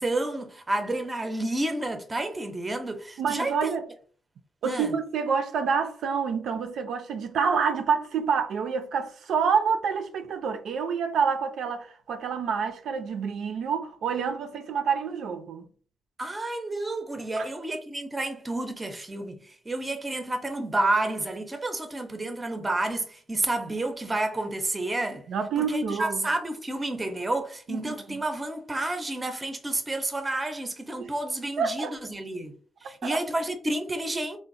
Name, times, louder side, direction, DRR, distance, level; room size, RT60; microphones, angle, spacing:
voice 1, 0.0-3.7 4.6-4.9 16.2-25.2 25.6-32.6 32.8-34.4, right 2 dB, 20° right, 0.5 m, -30 dB
voice 2, 3.2-3.8 4.6-15.7 17.4-17.5 25.3-26.3 27.7-28.2 31.0-31.1 31.6-32.0 33.0-33.2, right 6 dB, 70° right, 0.4 m, -28 dB
3.8 x 2.0 x 2.5 m
cardioid pair, 110°, 0 cm